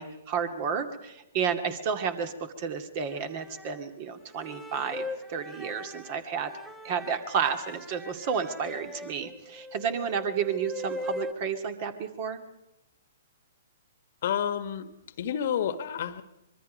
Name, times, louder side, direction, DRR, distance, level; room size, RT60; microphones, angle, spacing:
voice 1, 0.0-6.5 6.8-12.4, right 6 dB, 45° right, 7 dB, 2.1 m, -31 dB
sound 1, 3.1-3.8 4.3-11.3, left 2 dB, ahead, 1.0 m, -41 dB
voice 2, 14.2-14.9 15.2-16.2, left 9 dB, 55° left, 12 dB, 1.3 m, -29 dB
25.0 x 22.0 x 5.3 m, 0.90 s
figure-of-eight pair, 120°, 0 cm